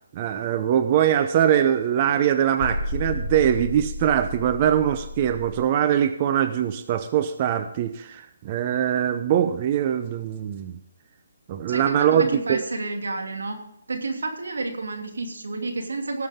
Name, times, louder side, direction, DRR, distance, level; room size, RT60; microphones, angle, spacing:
voice 1, 0.1-10.8 11.5-12.6, right 10 dB, 30° right, 9 dB, 0.7 m, -22 dB
sound 1, 2.6-5.7, left 1 dB, 45° left, 3.0 m, -32 dB
voice 2, 11.7-13.6 13.9-16.3, right 3 dB, 85° right, 4 dB, 2.6 m, -30 dB
18.5 x 7.5 x 3.6 m, 0.78 s
hypercardioid pair, 160°, 0 cm